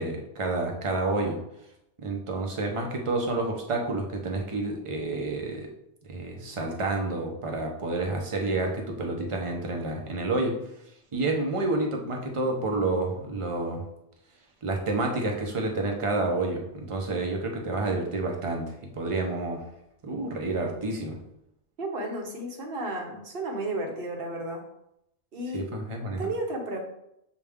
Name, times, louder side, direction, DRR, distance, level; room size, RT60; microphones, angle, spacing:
voice 1, 0.0-1.4 2.0-5.7 6.1-10.6 11.1-13.8 14.6-19.6 20.0-21.2 25.5-26.2, right 2 dB, 35° right, 1 dB, 0.6 m, -29 dB
voice 2, 21.8-24.6 25.3-25.7 26.2-26.8, right 2 dB, 55° right, 1 dB, 1.0 m, -33 dB
6.5 x 2.3 x 3.5 m, 0.81 s
omnidirectional pair, 1.2 m